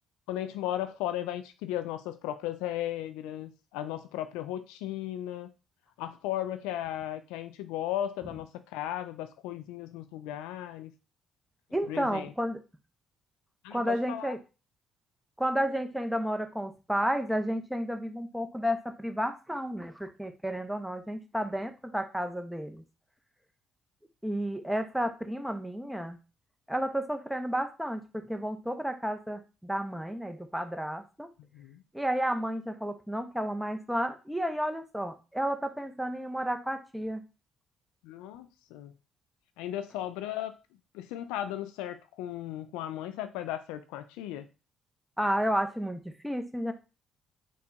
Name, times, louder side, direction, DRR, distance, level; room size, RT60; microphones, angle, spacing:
voice 1, 0.3-5.5 6.0-10.9 11.8-12.3 13.6-14.3 31.4-31.8 38.0-38.9 39.6-40.5 40.9-44.5, left 12 dB, 80° left, 0.3 m, -36 dB
voice 2, 11.7-12.6 13.7-14.4 15.4-22.8 24.2-26.2 26.7-31.3 31.9-37.2 45.2-46.7, equal, 5° right, 0.7 m, -32 dB
4.5 x 2.3 x 4.0 m
hypercardioid pair, 55°, 0 cm